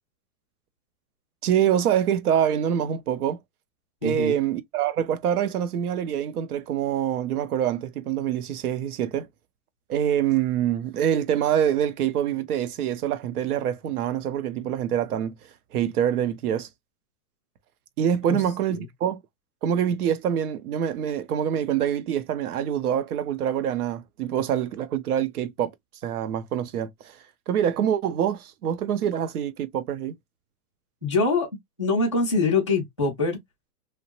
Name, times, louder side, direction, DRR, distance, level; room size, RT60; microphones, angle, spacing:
voice 1, 1.4-3.4 4.0-9.3 9.9-15.3 15.7-16.7 18.0-19.2 19.6-25.7 26.0-27.2 27.5-30.1, right 9 dB, 70° right, 0.7 m, -25 dB
voice 2, 4.0-4.3 18.2-18.4 18.8-18.9 31.0-31.5 31.8-33.4, left 3 dB, 25° left, 0.3 m, -24 dB
2.9 x 2.1 x 2.8 m
supercardioid pair, 175°, 47 cm